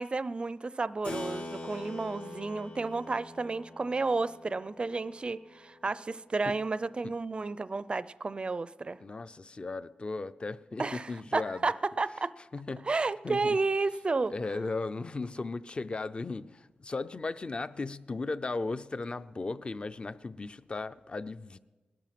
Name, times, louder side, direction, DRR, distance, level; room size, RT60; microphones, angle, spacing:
voice 1, 0.0-9.0 10.8-12.3 12.9-14.3, right 3 dB, 35° right, 16 dB, 0.5 m, -32 dB
Keyboard (musical), 1.0-7.1, left 2 dB, 75° left, 4.0 m, -44 dB
voice 2, 9.0-11.7 12.5-12.9 13.2-13.6 14.3-21.6, left 3 dB, 35° left, 13 dB, 0.5 m, -36 dB
19.0 x 12.5 x 5.9 m, 1.2 s
wide cardioid pair, 100°, 3 cm